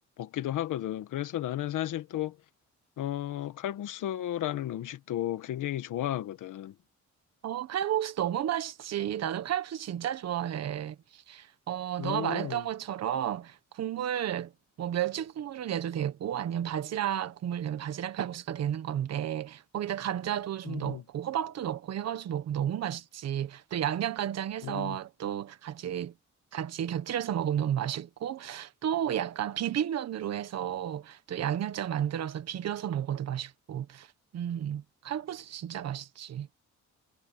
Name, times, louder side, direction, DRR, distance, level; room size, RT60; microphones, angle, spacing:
voice 1, 0.2-2.4 3.0-6.7 12.0-12.6 20.6-21.0 24.6-25.0, left 12 dB, 90° left, 1.5 m, -33 dB
voice 2, 7.4-14.5 14.8-26.1 26.5-34.1 34.3-36.5, right 10 dB, 60° right, 1.4 m, -32 dB
cardioid pair, 175°, 30 cm